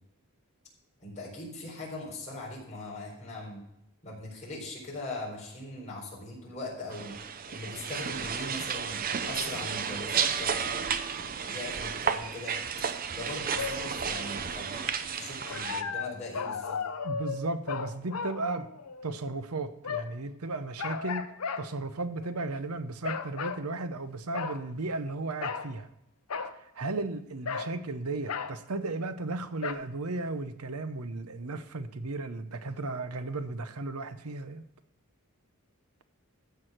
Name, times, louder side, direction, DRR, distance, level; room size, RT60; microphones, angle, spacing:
voice 1, 1.0-3.6 4.0-7.1 7.5-12.5 13.1-14.8 15.1-16.8, left 2 dB, 35° left, -4 dB, 4.3 m, -40 dB
sound 1, 6.9-15.8, right 6 dB, 40° right, 0.7 m, -32 dB
sound 2, 13.4-13.8 15.4-19.1 19.8-20.2 20.8-21.7 22.2-22.5 23.0-23.6 24.3-24.6 25.4-25.7 26.3-26.6 27.5-27.8 28.3-28.5 29.6-29.7, left 5 dB, 80° left, 0.8 m, -35 dB
voice 2, 17.0-18.7 19.0-21.2 21.6-25.9 26.8-34.6, right 2 dB, 85° right, 11 dB, 0.8 m, -35 dB
14.0 x 4.8 x 6.0 m, 0.83 s
head